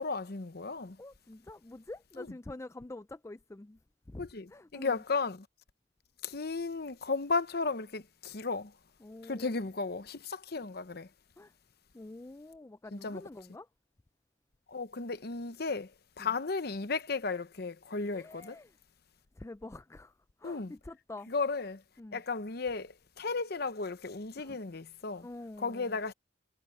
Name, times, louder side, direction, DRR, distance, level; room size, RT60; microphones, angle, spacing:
voice 1, 0.0-1.0 2.2-2.3 4.2-5.5 6.2-8.7 9.2-11.1 12.9-13.2 14.7-18.6 20.4-20.7 21.3-21.8 22.1-25.3 25.6-26.1, left 4 dB, 55° left, 0.9 m, -35 dB
voice 2, 1.0-3.8 4.1-5.0 9.0-9.5 11.4-11.5 11.9-13.7 16.2-16.3 18.0-18.7 19.4-21.3 22.0-22.2 24.4-24.6 25.2-26.0, left 2 dB, 15° left, 0.4 m, -47 dB
head